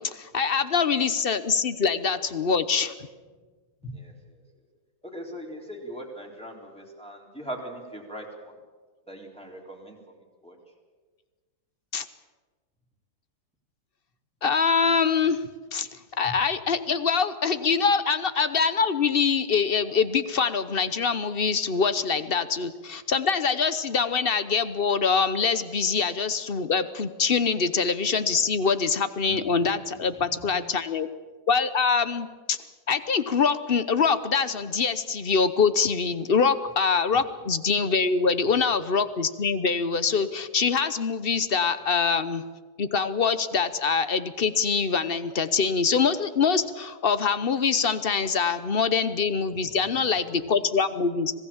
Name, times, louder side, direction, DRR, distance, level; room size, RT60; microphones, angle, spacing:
voice 1, 0.0-2.9 11.9-12.0 14.4-15.4 15.7-31.1 31.5-32.6 32.9-42.4 42.8-51.3, left 5 dB, 45° left, 13 dB, 0.9 m, -24 dB
voice 2, 5.0-8.5 9.1-10.0 10.4-10.6 29.3-29.7 30.3-30.5 49.8-50.5, right 1 dB, 5° left, -1 dB, 3.9 m, -40 dB
26.0 x 18.0 x 7.3 m, 1.4 s
omnidirectional pair, 1.8 m